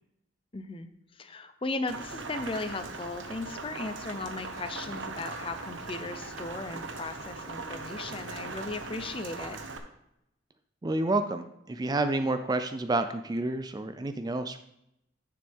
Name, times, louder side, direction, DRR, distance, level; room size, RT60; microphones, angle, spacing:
voice 1, 0.5-9.6, left 3 dB, 25° left, 10 dB, 0.6 m, -37 dB
Rain, 1.9-9.8, right 3 dB, 75° right, 1.0 m, -40 dB
voice 2, 10.8-14.6, right 2 dB, 20° right, 9 dB, 0.3 m, -29 dB
9.7 x 6.9 x 3.5 m, 0.83 s
head